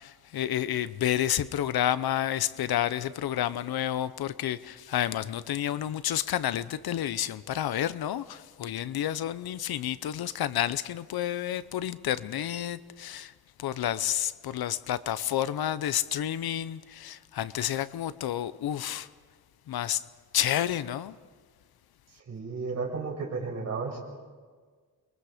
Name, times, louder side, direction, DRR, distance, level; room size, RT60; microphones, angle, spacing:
voice 1, 0.0-13.3 13.6-19.1 19.7-20.0 20.3-21.1, left 11 dB, 75° left, 0.8 m, -30 dB
voice 2, 22.3-24.0, right 4 dB, 45° right, 6.0 m, -33 dB
29.0 x 22.5 x 5.1 m
wide cardioid pair, 155°, 37 cm